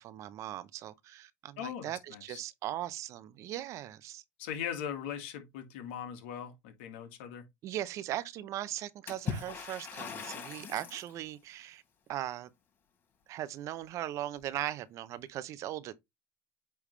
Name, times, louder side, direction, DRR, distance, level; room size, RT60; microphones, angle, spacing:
voice 1, 0.0-4.2 7.6-11.8 12.1-12.5 13.3-15.9, right 13 dB, 55° right, 0.7 m, -39 dB
voice 2, 1.6-2.4 4.4-7.4, left 8 dB, 80° left, 1.9 m, -40 dB
Water / Splash splatter, 9.1-11.1, left 6 dB, 35° left, 4.3 m, -40 dB
8.5 x 3.5 x 3.3 m
supercardioid pair, 105°, 6 cm